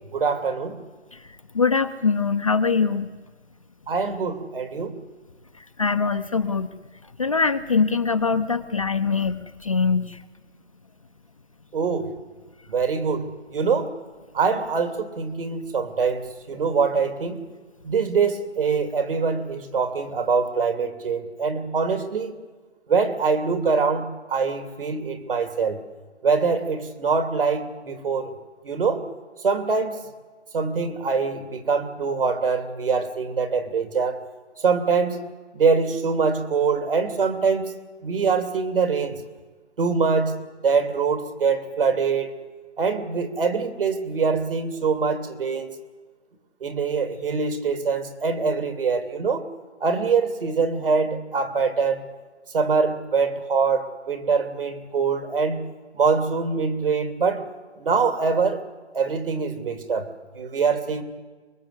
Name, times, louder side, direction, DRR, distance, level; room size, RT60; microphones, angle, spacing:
voice 1, 0.1-0.8 3.9-4.9 11.7-12.1 12.7-13.9 14.3-17.4 17.8-22.3 22.9-25.8 26.2-28.3 28.6-29.0 29.4-30.0 30.5-34.2 34.6-35.2 35.5-37.7 38.0-39.2 39.8-40.3 40.6-42.3 42.8-45.7 46.6-49.4 49.8-52.0 52.5-55.6 56.0-57.4 57.8-58.6 58.9-60.1 60.3-61.0, right 5 dB, 50° right, 8 dB, 2.9 m, -24 dB
voice 2, 1.1-3.1 5.5-6.7 7.2-10.2, left 5 dB, 30° left, 7 dB, 0.7 m, -23 dB
24.0 x 22.0 x 8.1 m, 1.4 s
hypercardioid pair, 165°, 35 cm